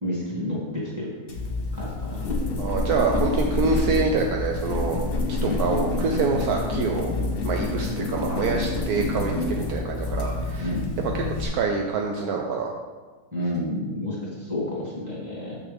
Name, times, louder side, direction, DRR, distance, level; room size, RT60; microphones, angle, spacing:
voice 1, 0.0-1.2 1.7-2.2 5.4-5.7 10.6-11.0 13.3-15.6, left 1 dB, 10° right, -7 dB, 2.2 m, -30 dB
sound 1, 1.3-11.5, left 2 dB, 40° left, 1.0 m, -27 dB
voice 2, 2.6-5.0 5.4-7.1 7.4-10.7 11.0-12.8, right 4 dB, 75° right, 1 dB, 1.1 m, -26 dB
7.1 x 6.3 x 3.4 m, 1.3 s
omnidirectional pair, 1.7 m